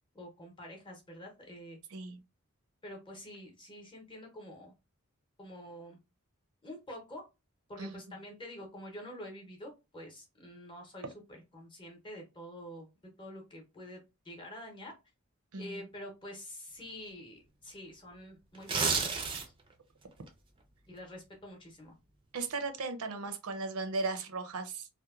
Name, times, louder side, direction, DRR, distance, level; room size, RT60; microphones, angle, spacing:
voice 1, 0.1-1.8 2.8-4.7 5.4-6.0 6.6-7.2 7.7-11.1 11.5-12.9 13.2-14.9 15.6-19.4 20.9-21.9, left 1 dB, 20° left, 0.7 m, -47 dB
voice 2, 1.9-2.2 7.8-8.2 15.5-15.8 22.3-24.9, right 3 dB, 75° right, 0.5 m, -37 dB
sound 1, 18.5-19.7 20.1-20.3, right 4 dB, 20° right, 0.4 m, -30 dB
2.9 x 2.1 x 2.3 m
head